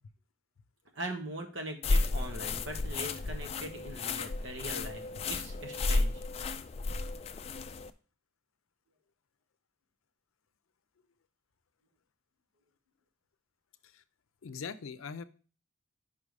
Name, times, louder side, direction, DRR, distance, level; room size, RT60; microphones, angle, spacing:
voice 1, 0.9-6.2, right 1 dB, 65° right, 4 dB, 1.3 m, -41 dB
sound 1, 1.8-7.9, left 3 dB, 30° left, 0.3 m, -33 dB
voice 2, 14.4-15.2, left 6 dB, 90° left, 14 dB, 0.5 m, -41 dB
5.5 x 4.9 x 5.3 m, 0.38 s
head